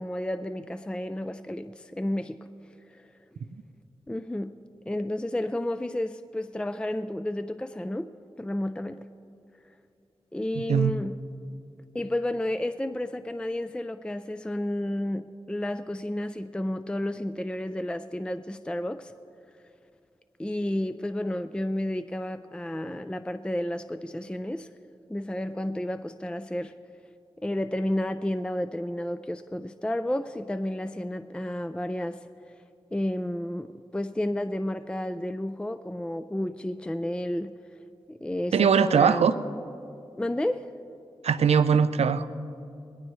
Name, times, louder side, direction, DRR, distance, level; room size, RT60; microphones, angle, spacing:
voice 1, 0.0-2.5 2.9-3.1 4.1-4.5 4.9-8.1 8.4-9.1 10.3-11.2 11.9-19.1 20.4-24.7 25.1-26.7 27.4-32.2 32.9-37.5 38.1-39.3 40.2-40.7, left 1 dB, 10° left, 11 dB, 0.4 m, -31 dB
voice 2, 10.6-11.0 38.5-39.3 41.2-42.3, right 6 dB, 90° right, 12 dB, 0.5 m, -21 dB
20.5 x 18.0 x 3.2 m, 2.6 s
wide cardioid pair, 70°, 10 cm